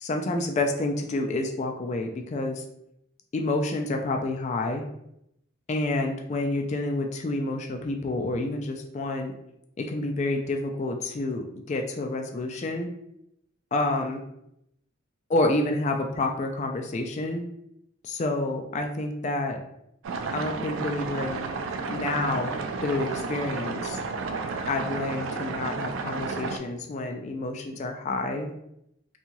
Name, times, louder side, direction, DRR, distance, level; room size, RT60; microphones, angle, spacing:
voice 1, 0.0-2.6 3.3-4.8 5.7-9.3 9.8-12.9 13.7-14.2 15.3-17.4 18.0-19.6 20.3-21.5 21.9-24.0 24.7-28.5, left 2 dB, 35° left, 4 dB, 0.3 m, -29 dB
sound 1, 20.0-26.6, right 4 dB, 80° right, 0.3 m, -32 dB
2.7 x 2.3 x 2.9 m, 0.79 s
head